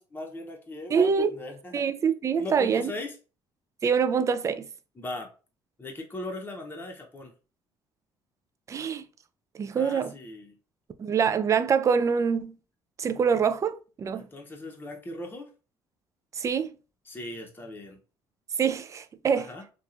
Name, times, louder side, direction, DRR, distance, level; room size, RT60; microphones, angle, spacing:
voice 1, 0.0-1.8 2.3-3.1 5.0-5.3 5.8-7.3 9.8-10.6 14.1-15.5 17.1-18.0 19.3-19.6, left 2 dB, 20° left, 0.7 m, -38 dB
voice 2, 0.9-1.4 1.7-2.9 3.8-4.7 8.7-9.1 9.5-10.1 11.0-12.6 13.0-14.3 16.3-16.7 18.6-19.5, right 6 dB, 35° right, 0.3 m, -25 dB
2.9 x 2.3 x 2.4 m
supercardioid pair, 85°, 10 cm